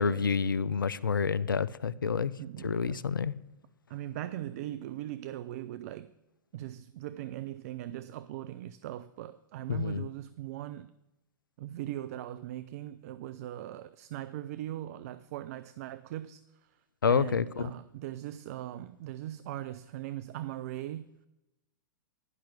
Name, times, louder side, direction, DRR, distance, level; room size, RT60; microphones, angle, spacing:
voice 1, 0.0-2.3 2.6-3.3 9.7-10.0 17.0-17.7, left 6 dB, 80° left, 0.4 m, -28 dB
voice 2, 2.4-3.0 3.9-6.1 6.5-10.9 11.6-16.4 17.1-21.1, right 13 dB, 50° right, 0.4 m, -40 dB
11.0 x 5.8 x 6.5 m
figure-of-eight pair, 105°, 11 cm